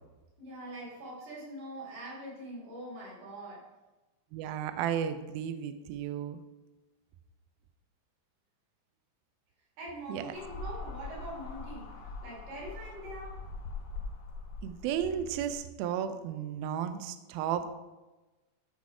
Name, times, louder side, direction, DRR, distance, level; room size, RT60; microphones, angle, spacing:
voice 1, 0.4-3.7 9.8-11.8 12.2-13.4, right 1 dB, 70° right, -6 dB, 5.2 m, -43 dB
voice 2, 4.3-6.4 10.1-10.3 14.6-17.7, right 9 dB, 90° right, 9 dB, 2.1 m, -33 dB
sound 1, 10.3-15.6, left 3 dB, 65° left, 2.4 m, -42 dB
12.5 x 4.2 x 4.8 m, 1.1 s
omnidirectional pair, 4.9 m